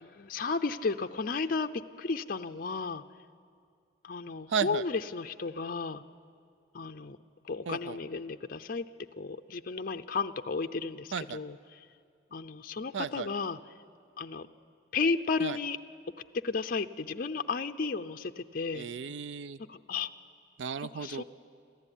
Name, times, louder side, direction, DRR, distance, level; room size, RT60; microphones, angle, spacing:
voice 1, 0.0-1.7 2.0-3.0 4.0-6.0 6.7-7.2 7.4-8.8 9.2-11.9 12.3-13.6 14.2-14.5 14.9-15.8 16.4-18.9 19.7-20.1 20.9-21.2, left 4 dB, 50° left, 7 dB, 0.6 m, -33 dB
voice 2, 4.5-4.8 7.7-8.0 11.1-11.4 12.9-13.3 15.4-15.6 18.7-19.6 20.6-21.2, right 6 dB, 90° right, 16 dB, 0.5 m, -34 dB
27.5 x 14.5 x 10.0 m, 2.4 s
head